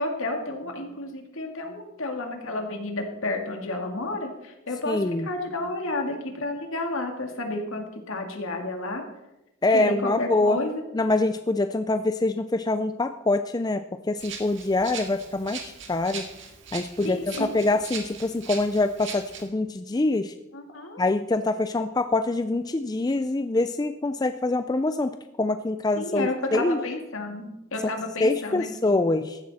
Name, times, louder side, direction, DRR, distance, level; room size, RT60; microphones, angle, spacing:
voice 1, 0.0-9.0 9.7-10.8 17.0-17.5 20.5-21.0 26.0-29.0, left 2 dB, 70° left, 3 dB, 2.2 m, -31 dB
voice 2, 4.9-5.3 9.6-10.6 10.9-13.8 14.1-16.2 16.7-20.3 21.0-26.8 28.2-29.4, left 2 dB, 20° left, 9 dB, 0.3 m, -25 dB
Rattle (instrument), 14.2-19.4, right 6 dB, 55° right, 2.0 m, -40 dB
15.0 x 11.5 x 4.2 m, 0.94 s
head